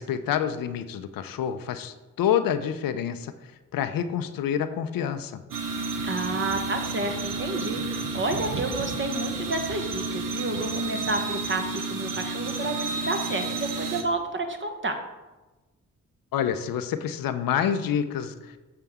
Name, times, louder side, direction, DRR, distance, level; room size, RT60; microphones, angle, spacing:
voice 1, 0.0-3.3 3.7-5.4 16.3-18.6, left 9 dB, 85° left, 10 dB, 0.6 m, -27 dB
sound 1, 5.5-14.0, right 3 dB, 80° right, 0.9 m, -31 dB
voice 2, 6.0-14.9, right 2 dB, 35° right, 5 dB, 1.1 m, -30 dB
7.0 x 6.7 x 3.6 m, 1.1 s
cardioid pair, 65°, 33 cm